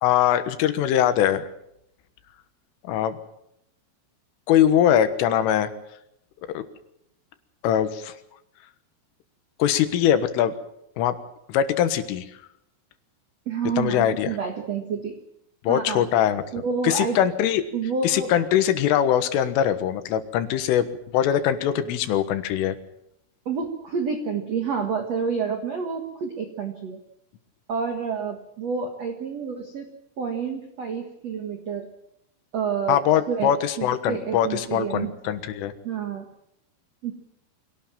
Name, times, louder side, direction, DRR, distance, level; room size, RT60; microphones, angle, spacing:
voice 1, 0.0-1.5 2.8-3.2 4.5-5.7 6.5-6.6 7.6-8.1 9.6-10.5 11.0-11.2 11.5-12.3 13.8-14.3 15.6-16.4 16.8-17.6 18.0-20.9 21.1-22.8 32.9-35.7, left 10 dB, 80° left, 11 dB, 3.8 m, -22 dB
voice 2, 13.4-15.2 15.7-16.1 16.5-17.2 17.7-18.3 23.4-27.0 27.7-29.9 30.2-31.9 32.5-33.0 33.3-35.1 35.8-36.3 37.0-37.1, right 5 dB, 75° right, 5 dB, 1.5 m, -29 dB
24.5 x 17.5 x 7.4 m, 0.78 s
omnidirectional pair, 5.9 m